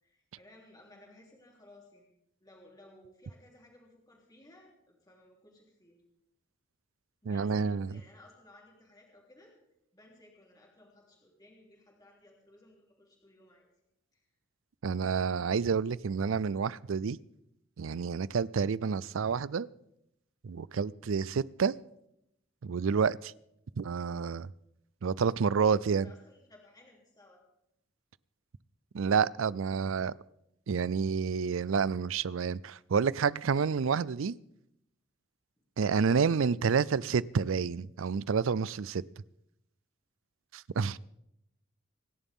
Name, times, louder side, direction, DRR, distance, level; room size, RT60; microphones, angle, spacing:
voice 1, 0.0-2.1 2.4-6.0 7.2-9.5 9.9-13.7 14.1-14.2 14.9-15.1 25.4-27.4, left 1 dB, 20° left, 3.3 m, -58 dB
voice 2, 7.3-7.9 14.8-17.2 17.8-19.7 20.4-21.7 22.6-23.3 23.8-24.5 25.0-26.1 28.9-30.1 30.7-34.4 35.8-39.0 40.5-41.0, right 6 dB, 75° right, 0.4 m, -29 dB
26.0 x 11.0 x 3.7 m
head